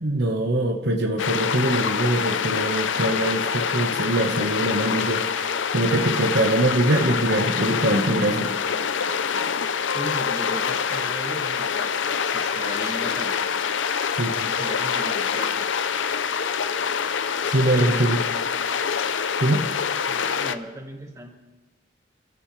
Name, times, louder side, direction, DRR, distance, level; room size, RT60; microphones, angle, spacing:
voice 1, 0.0-8.5 14.1-14.5 17.4-18.2 19.4-19.6, right 1 dB, 60° right, 3 dB, 1.3 m, -23 dB
sound 1, 1.2-20.6, left 6 dB, 75° left, 0.6 m, -25 dB
voice 2, 9.9-13.3 14.6-15.7 17.7-17.9 20.1-21.3, right 1 dB, 15° right, 0 dB, 2.1 m, -37 dB
28.5 x 14.0 x 3.3 m, 1.1 s
head